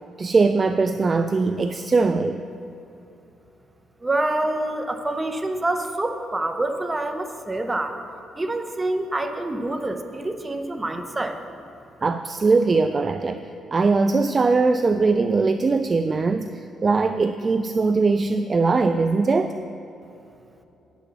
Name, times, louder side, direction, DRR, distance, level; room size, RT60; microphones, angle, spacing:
voice 1, 0.2-2.4 12.0-13.4 13.7-19.5, right 4 dB, 35° right, 9 dB, 0.3 m, -21 dB
voice 2, 4.0-8.0 8.4-11.4, right 2 dB, 15° right, 6 dB, 0.8 m, -26 dB
9.5 x 6.1 x 6.8 m, 2.9 s
cardioid pair, 90°, 0 cm